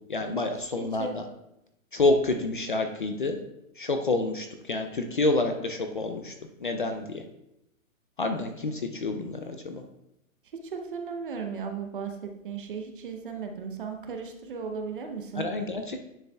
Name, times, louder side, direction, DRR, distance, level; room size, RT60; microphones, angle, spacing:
voice 1, 0.1-1.2 1.9-3.4 3.8-6.3 6.6-7.2 8.2-9.8 15.4-16.0, left 2 dB, 40° left, 6 dB, 0.4 m, -28 dB
voice 2, 0.8-1.2 10.5-15.5, right 5 dB, 40° right, 5 dB, 0.7 m, -36 dB
9.8 x 6.7 x 2.3 m, 0.84 s
hypercardioid pair, 170°, 42 cm